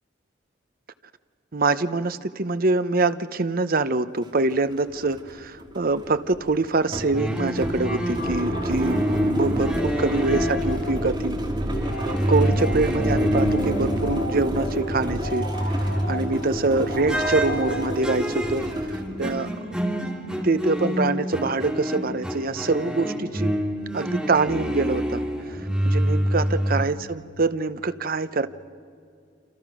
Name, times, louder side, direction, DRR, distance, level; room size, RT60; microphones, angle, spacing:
voice 1, 1.5-9.0 9.3-11.4 12.3-19.5 20.4-23.5 23.9-25.2 25.5-28.5, right 3 dB, 50° right, 12 dB, 0.8 m, -25 dB
sound 1, 4.2-4.3 4.7-19.4, equal, 25° right, 3.0 m, -29 dB
sound 2, 7.1-14.6 15.0-16.5 17.1-26.8, equal, 5° right, 2.7 m, -27 dB
sound 3, 7.9-18.6, left 1 dB, 55° left, 2.2 m, -36 dB
28.5 x 27.0 x 6.2 m, 2.4 s
head